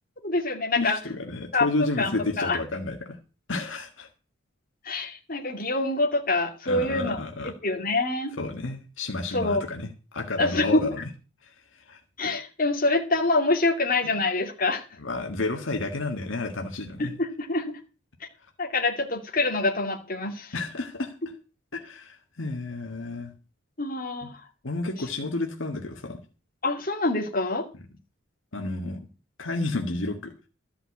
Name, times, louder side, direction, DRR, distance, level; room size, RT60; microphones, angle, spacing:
voice 1, 0.2-1.0 1.5-1.7 2.0-2.1 2.4-2.6 4.8-7.2 7.6-8.3 9.3-9.6 10.4-10.8 12.2-14.8 17.0-17.7 18.6-20.5 23.8-24.4 26.6-27.7, left 2 dB, 45° left, 1 dB, 2.5 m, -25 dB
voice 2, 0.8-3.2 3.5-4.1 6.6-7.5 8.4-11.0 11.4-12.0 14.0-14.1 15.0-17.1 20.5-21.1 21.7-23.3 24.2-24.3 24.6-26.2 28.5-29.0 29.4-30.3, left 2 dB, 75° left, 3 dB, 1.7 m, -31 dB
13.5 x 5.8 x 8.3 m, 0.34 s
head